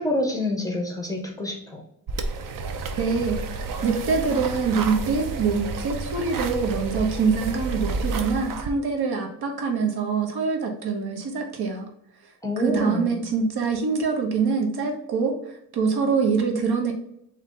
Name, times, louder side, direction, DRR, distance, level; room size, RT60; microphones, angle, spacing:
voice 1, 0.0-1.8 12.4-13.2, left 1 dB, 10° left, 1 dB, 0.6 m, -27 dB
sound 1, 2.1-8.7, right 3 dB, 60° right, 0.5 m, -30 dB
voice 2, 3.0-3.4 3.8-11.9 12.6-16.9, right 5 dB, 85° right, 2 dB, 1.0 m, -24 dB
3.8 x 2.9 x 3.6 m, 0.76 s
wide cardioid pair, 170°, 37 cm